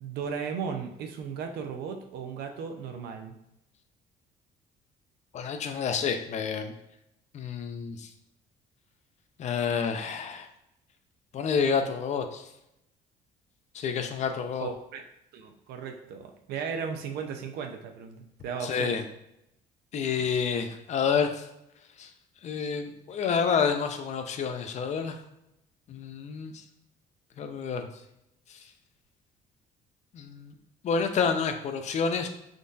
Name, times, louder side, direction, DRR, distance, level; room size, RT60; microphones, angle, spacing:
voice 1, 0.0-3.3 14.6-15.0 15.3-19.0 20.2-20.3, right 6 dB, 75° right, 4 dB, 0.4 m, -36 dB
voice 2, 5.3-6.7 7.3-8.1 9.4-10.5 11.3-12.5 13.7-14.7 18.6-19.0 19.9-21.5 22.0-22.1 22.4-25.2 25.9-26.6 27.4-27.9 28.5-28.6 30.1-30.5 30.8-32.3, left 6 dB, 45° left, 7 dB, 0.4 m, -29 dB
3.6 x 2.3 x 2.6 m, 0.83 s
cardioid pair, 110°, 17 cm